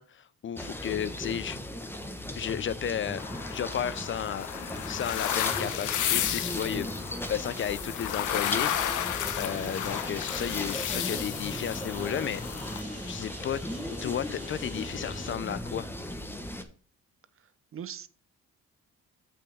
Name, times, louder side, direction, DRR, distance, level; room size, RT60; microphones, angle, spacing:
voice 1, 0.0-1.6 2.3-3.2 3.5-4.5 4.9-6.9 7.3-8.7 9.3-12.4 13.1-13.6 14.0-15.9, left 9 dB, 40° left, 0.4 m, -33 dB
sound 1, 0.6-16.6, left 1 dB, 5° left, 1.2 m, -37 dB
sound 2, 3.2-12.8, left 10 dB, 80° left, 0.9 m, -33 dB
Engine, 9.5-15.3, left 1 dB, 25° left, 2.8 m, -47 dB
voice 2, 17.4-18.1, right 9 dB, 45° right, 0.7 m, -42 dB
7.8 x 6.3 x 3.5 m
cardioid pair, 90°, 30 cm